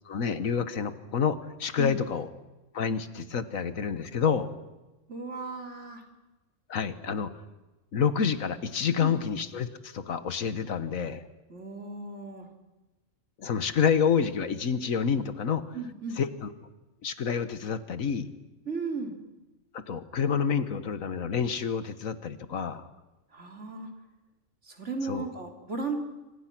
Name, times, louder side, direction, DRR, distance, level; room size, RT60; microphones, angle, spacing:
voice 1, 0.0-2.3 2.7-4.5 6.7-7.3 7.9-11.2 13.4-15.6 16.2-16.5 17.0-18.3 19.7-22.8 25.1-25.3, left 6 dB, 90° left, 12 dB, 1.7 m, -28 dB
voice 2, 5.1-6.0 9.0-9.1 11.5-12.5 15.7-16.2 18.6-19.2 23.3-23.9 24.6-26.0, right 3 dB, 60° right, 3 dB, 3.5 m, -35 dB
27.0 x 26.0 x 6.1 m, 1.1 s
omnidirectional pair, 1.4 m